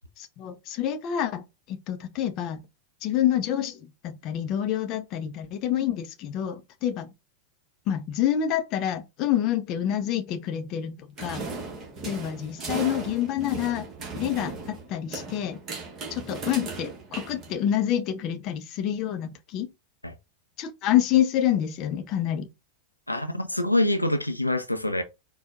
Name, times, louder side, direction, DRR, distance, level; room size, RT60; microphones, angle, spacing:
voice 1, 0.2-1.4 1.7-2.6 3.0-7.1 7.9-11.5 12.0-13.8 14.2-15.6 16.1-19.7 20.6-22.5, left 10 dB, 40° left, 0.6 m, -27 dB
sound 1, 11.2-17.9, right 3 dB, 30° right, 1.3 m, -37 dB
voice 2, 23.1-25.0, left 1 dB, 85° left, 0.4 m, -25 dB
4.3 x 2.3 x 3.8 m
figure-of-eight pair, 90°, 0 cm